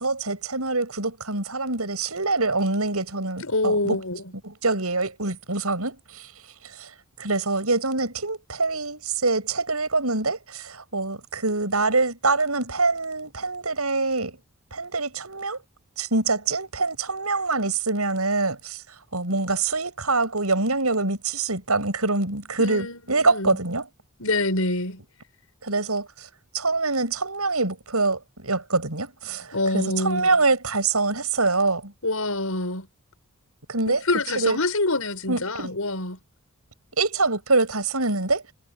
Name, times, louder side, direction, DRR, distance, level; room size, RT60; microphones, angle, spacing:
voice 1, 0.0-4.0 4.4-6.3 6.8-6.9 7.2-14.4 14.7-15.6 16.0-18.8 19.1-23.8 25.6-26.3 26.5-31.9 33.7-34.0 34.4-34.6 35.3-35.7 37.0-38.4, right 3 dB, 85° right, 7.4 m, -25 dB
voice 2, 3.4-4.3 22.6-23.6 24.2-25.0 29.5-30.4 32.0-32.9 33.9-36.2, left 2 dB, 75° left, 7.1 m, -26 dB
head